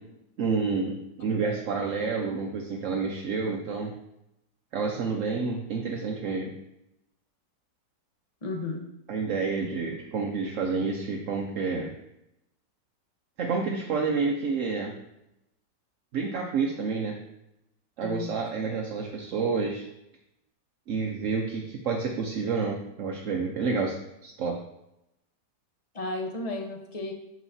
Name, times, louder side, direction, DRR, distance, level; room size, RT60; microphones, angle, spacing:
voice 1, 0.4-3.9 4.7-6.5 9.1-11.9 13.4-14.9 16.1-17.2 18.0-19.8 20.9-23.9 24.2-24.6, right 4 dB, 55° right, 1 dB, 0.9 m, -29 dB
voice 2, 8.4-8.8 18.0-18.3 25.9-27.1, left 2 dB, 30° left, 2 dB, 0.7 m, -33 dB
9.0 x 6.5 x 2.7 m, 0.87 s
omnidirectional pair, 1.9 m